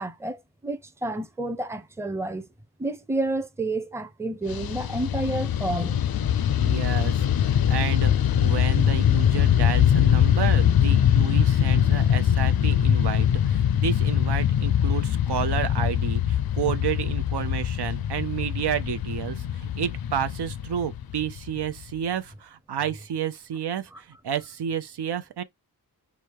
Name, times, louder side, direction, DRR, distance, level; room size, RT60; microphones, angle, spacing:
voice 1, 0.0-2.5 2.8-6.0 23.9-24.0, right 2 dB, 5° right, 0.6 m, -30 dB
Fixed-wing aircraft airplane, 4.5-21.9, left 9 dB, 65° left, 0.5 m, -22 dB
voice 2, 6.6-25.4, right 8 dB, 85° right, 0.7 m, -31 dB
5.0 x 2.1 x 4.6 m
wide cardioid pair, 130°, 39 cm